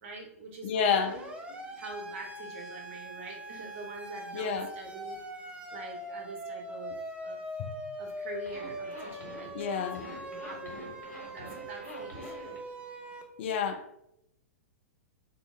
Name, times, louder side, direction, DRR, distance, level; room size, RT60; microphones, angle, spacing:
voice 1, 0.0-1.3 1.8-5.2 5.7-6.9 7.2-7.4 8.0-12.6, right 3 dB, 55° right, 0.8 m, -45 dB
voice 2, 0.6-1.2 1.7-1.8 4.3-4.7 7.6-7.7 9.5-10.0 13.4-14.0, left 6 dB, 50° left, 0.4 m, -30 dB
Siren, 0.8-13.2, right 1 dB, 15° right, 0.4 m, -42 dB
Zipper (clothing), 8.4-12.6, left 1 dB, 80° left, 0.9 m, -46 dB
2.7 x 2.2 x 3.2 m
figure-of-eight pair, 105°, 8 cm